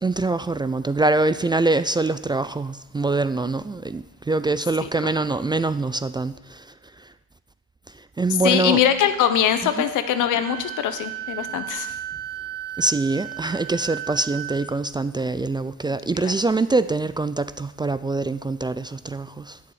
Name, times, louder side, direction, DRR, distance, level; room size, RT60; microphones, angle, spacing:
voice 1, 0.0-7.1 7.9-8.8 9.8-9.9 12.8-19.7, right 3 dB, 15° right, 0.3 m, -24 dB
voice 2, 4.8-5.2 8.3-12.0 15.9-16.3, left 9 dB, 80° left, 1.0 m, -23 dB
Wind instrument woodwind instrument, 10.4-14.6, right 12 dB, 30° right, 2.6 m, -34 dB
8.2 x 7.0 x 8.5 m
cardioid pair, 90°, 30 cm